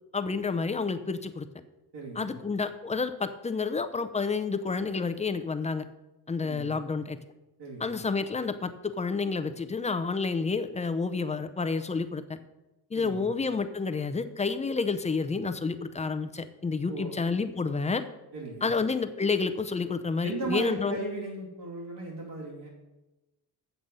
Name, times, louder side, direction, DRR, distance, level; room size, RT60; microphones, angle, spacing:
voice 1, 0.1-1.5 2.2-5.8 6.3-7.2 7.8-12.2 12.9-18.0 18.6-21.0, left 4 dB, 20° left, 10 dB, 0.4 m, -29 dB
voice 2, 1.9-2.4 6.4-6.8 7.6-8.0 12.9-13.3 16.9-17.1 18.3-18.7 20.2-22.7, right 3 dB, 90° right, -4 dB, 2.7 m, -37 dB
8.0 x 7.4 x 5.3 m, 1.0 s
wide cardioid pair, 160°, 39 cm